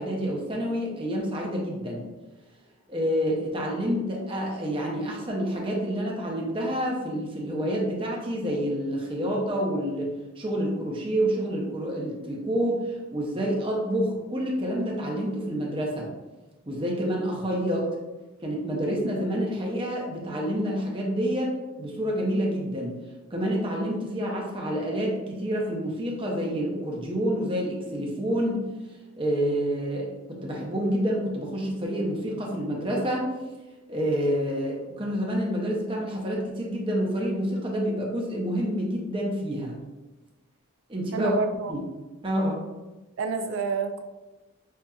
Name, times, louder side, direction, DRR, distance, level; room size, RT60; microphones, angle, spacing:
voice 1, 0.0-2.0 2.9-16.1 16.7-17.9 18.4-23.0 23.3-28.6 29.2-33.3 33.9-39.7 40.9-41.3 41.7-41.8 42.2-42.6, equal, 25° right, -2 dB, 0.6 m, -28 dB
voice 2, 41.1-41.7 43.2-44.0, right 4 dB, 65° right, 7 dB, 0.3 m, -28 dB
5.4 x 2.5 x 2.3 m, 1.1 s
head